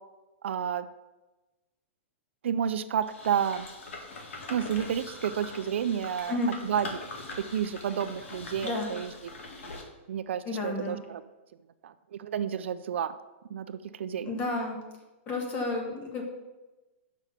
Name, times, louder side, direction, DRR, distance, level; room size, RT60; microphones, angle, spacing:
voice 1, 0.4-0.9 2.4-3.7 4.5-6.4 6.6-6.9 7.5-9.1 10.1-11.2 11.8-13.1 13.5-14.3, right 8 dB, 65° right, 12 dB, 0.4 m, -30 dB
sound 1, 3.0-9.8, left 2 dB, 75° left, 1.8 m, -42 dB
voice 2, 10.4-11.0 14.3-14.8 15.3-16.2, left 2 dB, 20° left, 1 dB, 1.3 m, -31 dB
6.7 x 6.1 x 5.7 m, 1.1 s
hypercardioid pair, 170°, 7 cm